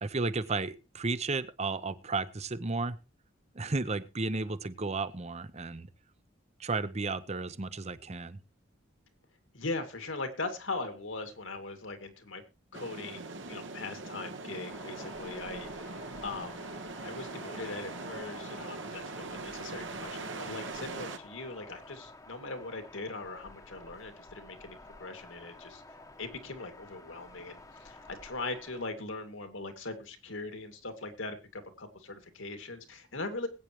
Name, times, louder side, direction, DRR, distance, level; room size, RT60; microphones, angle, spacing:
voice 1, 0.0-3.0 3.5-5.9 6.6-8.4, right 3 dB, 35° right, 14 dB, 0.8 m, -33 dB
voice 2, 9.5-12.4 12.7-25.8 26.2-33.5, left 3 dB, 75° left, 6 dB, 2.3 m, -40 dB
sound 1, 12.7-21.2, right 3 dB, 65° right, 1.3 m, -41 dB
sound 2, 14.7-28.9, left 2 dB, 20° left, 1.1 m, -52 dB
21.0 x 8.9 x 3.1 m, 0.30 s
head